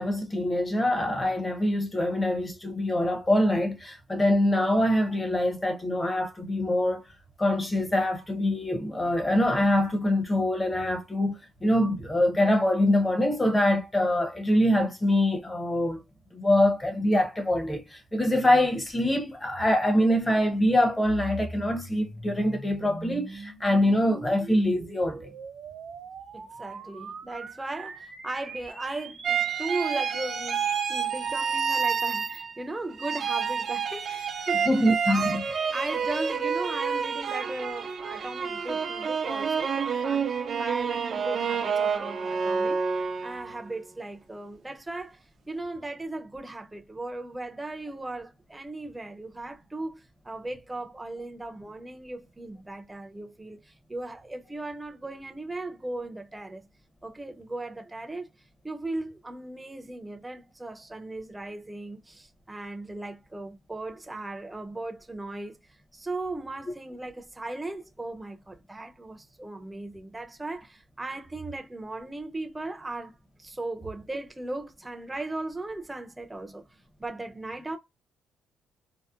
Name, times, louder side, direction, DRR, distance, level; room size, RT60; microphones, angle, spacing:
voice 1, 0.0-7.0 7.4-16.0 16.3-25.3 34.7-35.4, left 1 dB, 20° left, 0.8 m, -24 dB
sound 1, 21.0-32.4, right 3 dB, 70° right, 1.1 m, -42 dB
voice 2, 26.3-34.7 35.1-35.4 35.7-56.7 57.0-58.3 58.6-76.6 77.0-77.8, right 2 dB, 15° right, 0.6 m, -37 dB
sound 2, 29.2-32.7 33.0-43.6, right 6 dB, 55° right, 0.5 m, -29 dB
2.7 x 2.0 x 2.4 m
cardioid pair, 90°, 0 cm